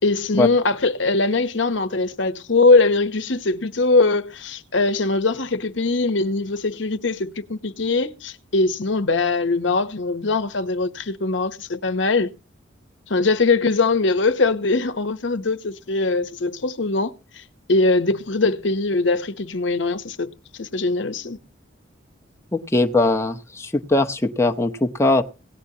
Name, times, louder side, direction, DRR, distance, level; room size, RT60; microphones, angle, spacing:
voice 1, 0.0-12.3 13.1-17.4 17.7-20.3 20.6-21.4, left 3 dB, 75° left, 1.0 m, -21 dB
voice 2, 22.5-25.2, left 2 dB, 15° left, 0.8 m, -20 dB
17.5 x 10.5 x 2.9 m
head